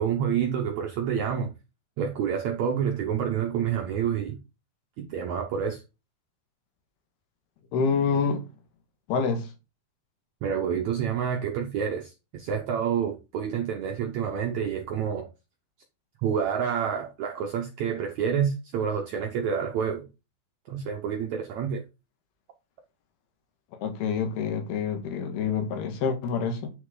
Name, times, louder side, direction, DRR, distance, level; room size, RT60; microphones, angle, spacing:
voice 1, 0.0-1.5 2.0-4.4 5.0-5.8 10.4-15.3 16.2-20.1 20.7-21.8, right 7 dB, 75° right, 1.7 m, -28 dB
voice 2, 7.7-8.4 9.1-9.5 23.8-26.7, left 5 dB, 80° left, 3.4 m, -27 dB
9.1 x 6.5 x 3.8 m
omnidirectional pair, 4.5 m